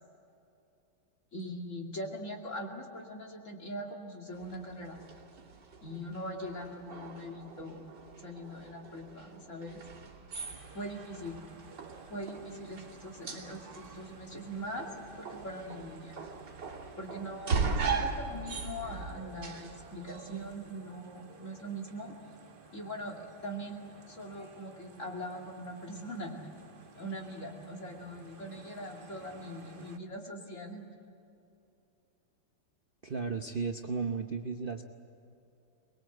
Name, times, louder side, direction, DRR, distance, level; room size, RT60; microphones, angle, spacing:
voice 1, 1.3-5.0 5.8-7.9 8.2-9.8 10.7-11.4 12.1-14.9 15.2-16.1 17.0-22.1 22.7-23.8 24.1-26.4 27.0-30.8, equal, 35° left, 1 dB, 2.8 m, -41 dB
sound 1, 4.3-20.6, right 4 dB, 55° right, 3.4 m, -39 dB
sound 2, 10.4-30.0, right 4 dB, 35° right, 0.9 m, -55 dB
voice 2, 33.0-34.8, right 4 dB, 80° right, 4 dB, 0.4 m, -34 dB
23.5 x 22.0 x 8.0 m, 2.7 s
omnidirectional pair, 2.4 m